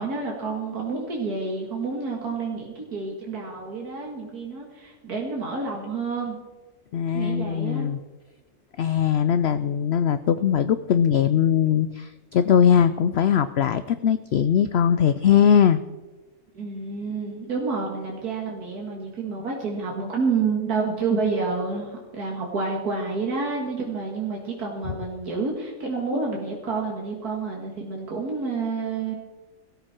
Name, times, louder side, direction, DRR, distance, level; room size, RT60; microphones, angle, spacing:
voice 1, 0.0-6.4 7.1-7.9 16.5-29.1, right 4 dB, 85° right, -1 dB, 2.5 m, -29 dB
voice 2, 6.9-8.0 8.8-15.8, left 8 dB, 65° left, 13 dB, 0.6 m, -20 dB
17.5 x 14.0 x 4.5 m, 1.2 s
omnidirectional pair, 1.6 m